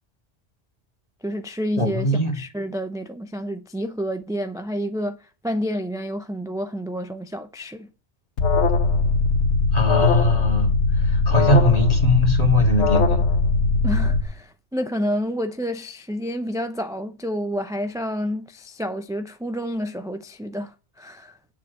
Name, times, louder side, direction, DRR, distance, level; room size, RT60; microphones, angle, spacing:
voice 1, 1.2-2.1 2.3-5.2 5.4-7.9 13.8-21.4, equal, 5° right, 0.5 m, -29 dB
voice 2, 1.8-2.4 9.7-13.2, left 1 dB, 35° left, 2.3 m, -21 dB
Alarm, 8.4-14.2, left 3 dB, 80° left, 1.2 m, -20 dB
8.6 x 7.2 x 8.2 m
omnidirectional pair, 1.2 m